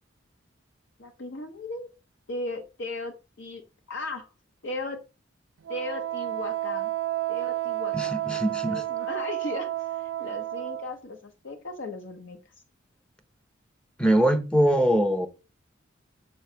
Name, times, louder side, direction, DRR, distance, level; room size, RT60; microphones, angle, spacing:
voice 1, 1.0-1.9 2.3-3.6 3.9-4.3 4.6-5.0 5.7-6.9 7.3-8.2 8.6-12.4, left 2 dB, 70° left, 0.9 m, -36 dB
Wind instrument woodwind instrument, 5.7-10.9, right 15 dB, 75° right, 0.4 m, -31 dB
voice 2, 7.9-8.8 14.0-15.3, right 1 dB, 5° left, 0.6 m, -22 dB
7.1 x 3.1 x 5.6 m
head